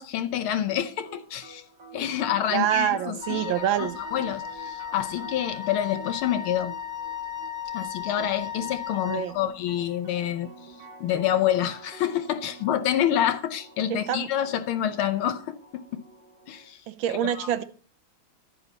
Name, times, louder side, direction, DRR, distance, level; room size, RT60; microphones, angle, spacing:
voice 1, 0.0-1.6 1.9-6.7 7.7-10.7 11.0-16.0 16.5-16.8 17.1-17.5, left 11 dB, 80° left, 1.6 m, -28 dB
sound 1, 0.7-16.7, right 4 dB, 60° right, 3.0 m, -48 dB
voice 2, 2.5-3.9 9.1-9.3 13.9-14.3 16.9-17.6, right 11 dB, 75° right, 1.5 m, -26 dB
Wind instrument woodwind instrument, 3.2-9.3, left 8 dB, 5° right, 0.9 m, -36 dB
11.0 x 9.7 x 4.1 m
omnidirectional pair, 2.3 m